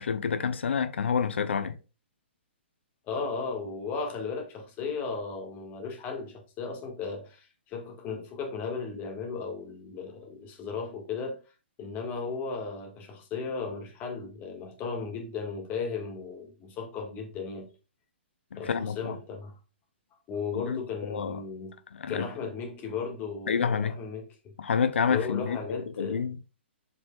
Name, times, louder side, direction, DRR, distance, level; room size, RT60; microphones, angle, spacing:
voice 1, 0.0-1.8 18.5-19.2 20.5-21.4 22.0-22.3 23.5-24.0 24.6-26.4, left 6 dB, 75° left, 0.8 m, -28 dB
voice 2, 3.0-11.4 11.8-17.7 18.6-19.6 20.3-21.8 22.1-24.7 25.1-26.3, left 5 dB, 30° left, 1.9 m, -36 dB
8.1 x 5.1 x 2.4 m
hypercardioid pair, 130°, 6 cm